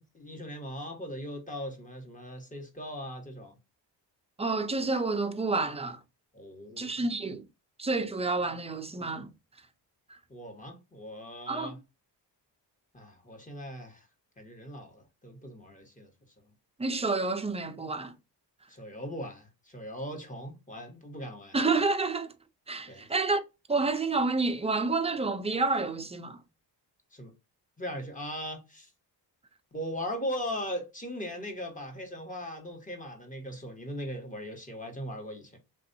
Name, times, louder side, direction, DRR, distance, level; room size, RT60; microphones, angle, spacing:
voice 1, 0.1-3.5 6.3-6.9 10.3-11.8 12.9-14.1 14.4-16.1 18.7-21.5 22.9-23.1 27.1-27.3 27.8-28.9 29.7-35.6, equal, 20° left, 1.2 m, -39 dB
voice 2, 4.4-6.0 6.8-7.5 7.8-9.3 10.1-10.2 11.5-11.8 16.8-18.1 21.5-22.3 22.7-23.4 23.7-26.4, right 3 dB, 15° right, 0.5 m, -29 dB
3.4 x 2.6 x 2.6 m
cardioid pair, 95°, 42 cm